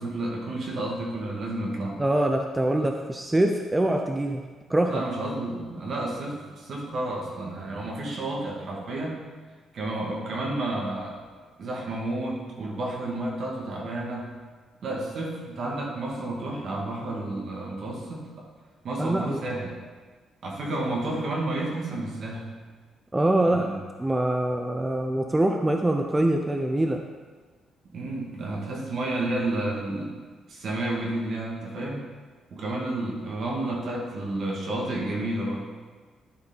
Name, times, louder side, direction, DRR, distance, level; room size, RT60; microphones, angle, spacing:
voice 1, 0.0-2.0 4.9-9.2 9.7-11.2 11.6-14.3 14.8-18.5 18.8-19.7 20.4-22.5 23.4-23.8 27.9-30.1 30.5-32.0 32.5-35.7, right 2 dB, 60° right, -2 dB, 2.0 m, -31 dB
voice 2, 2.0-4.4 4.7-5.0 19.0-19.4 23.1-23.7 24.0-27.0, right 1 dB, 15° right, 4 dB, 0.5 m, -24 dB
11.5 x 4.7 x 4.0 m, 1.4 s
cardioid pair, 90°, 0 cm